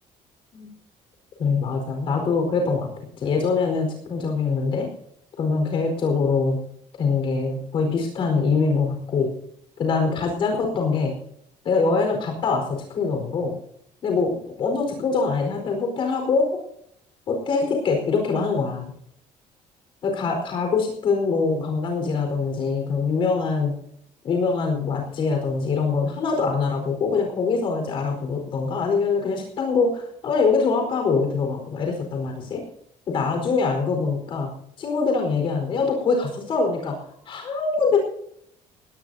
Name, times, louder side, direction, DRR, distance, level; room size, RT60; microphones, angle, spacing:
voice 1, 1.4-2.9 3.2-4.9 5.4-6.6 7.0-9.3 9.8-11.1 11.6-13.6 14.0-16.5 17.3-18.9 20.0-23.7 24.2-32.6 33.1-34.5 34.8-36.9 37.2-38.0, left 4 dB, 45° left, 3 dB, 4.6 m, -23 dB
20.5 x 17.5 x 2.8 m, 0.69 s
cardioid pair, 175°, 12 cm